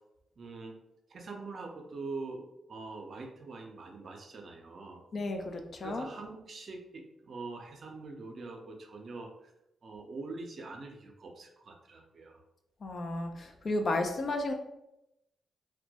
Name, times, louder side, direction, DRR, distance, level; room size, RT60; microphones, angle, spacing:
voice 1, 0.4-0.8 1.1-5.0 5.8-9.5 9.8-12.4, right 3 dB, 60° right, 3 dB, 0.4 m, -44 dB
voice 2, 5.1-6.1 12.8-14.5, left 2 dB, 55° left, 4 dB, 0.4 m, -33 dB
2.1 x 2.1 x 2.7 m, 0.87 s
supercardioid pair, 50°, 0 cm